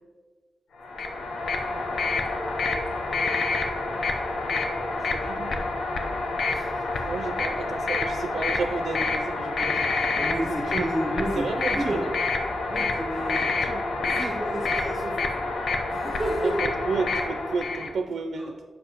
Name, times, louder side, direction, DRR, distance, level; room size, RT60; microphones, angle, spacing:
sound 1, 0.8-17.9, left 3 dB, 70° left, 0.6 m, -28 dB
voice 1, 5.1-5.6 7.0-10.1 10.5-10.9 11.4-12.1 13.3-13.8 16.4-18.6, right 4 dB, 65° right, 5 dB, 0.4 m, -32 dB
voice 2, 6.5-7.0 10.1-12.2 12.7-13.5 14.0-15.4 15.9-16.6 17.8-17.9 18.4-18.6, right 1 dB, 10° right, -3 dB, 1.0 m, -31 dB
7.3 x 6.2 x 2.9 m, 1.5 s
wide cardioid pair, 135°, 0 cm